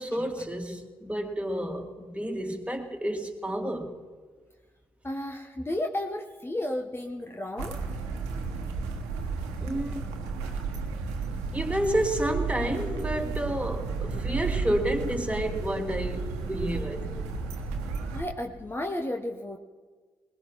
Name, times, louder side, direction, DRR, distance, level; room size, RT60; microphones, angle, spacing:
voice 1, 0.0-3.9 9.6-10.1 11.5-17.2, right 1 dB, 10° right, 2.3 m, -30 dB
voice 2, 5.0-7.8 18.1-19.6, left 1 dB, 20° left, 1.1 m, -33 dB
sound 1, 7.6-18.2, right 4 dB, 85° right, 1.3 m, -33 dB
20.5 x 20.0 x 3.1 m
hypercardioid pair, 45°, 11 cm